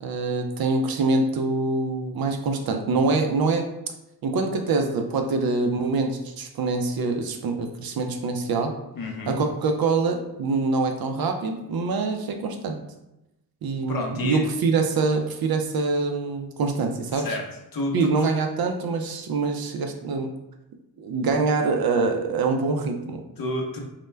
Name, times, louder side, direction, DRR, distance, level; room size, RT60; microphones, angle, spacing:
voice 1, 0.0-3.7 4.2-8.7 9.3-12.8 13.6-17.4 17.9-20.3 21.0-23.2, right 3 dB, 55° right, 5 dB, 0.5 m, -25 dB
voice 2, 8.9-9.4 13.9-14.5 17.1-18.1 23.4-23.8, left 1 dB, 50° left, 1 dB, 0.7 m, -30 dB
2.2 x 2.1 x 3.2 m, 0.92 s
supercardioid pair, 45°, 45 cm